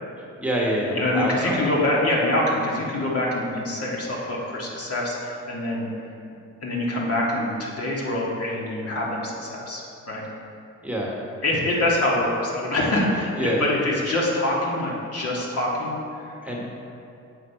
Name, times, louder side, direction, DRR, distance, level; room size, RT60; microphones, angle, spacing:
voice 1, 0.4-1.5 10.8-11.1 13.4-13.7 16.4-16.6, right 1 dB, 5° right, -4 dB, 1.3 m, -26 dB
voice 2, 1.0-5.9 6.6-10.2 11.4-16.6, left 1 dB, 50° left, -4 dB, 1.8 m, -25 dB
7.3 x 5.8 x 4.5 m, 2.7 s
cardioid pair, 90°, 30 cm